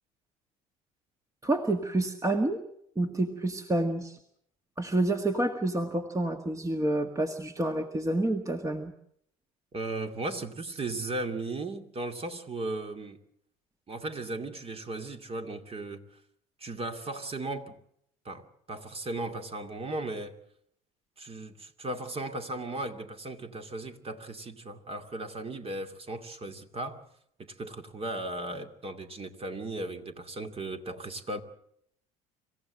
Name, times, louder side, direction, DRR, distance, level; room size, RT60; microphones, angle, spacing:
voice 1, 1.4-2.6 3.0-4.2 4.8-8.9, right 2 dB, 20° right, 1.8 m, -28 dB
voice 2, 9.7-13.2 13.9-16.0 16.6-17.8 18.2-20.4 21.2-27.0 27.6-31.4, right 2 dB, 35° right, 2.5 m, -36 dB
26.5 x 15.5 x 7.7 m
hypercardioid pair, 65°, 18 cm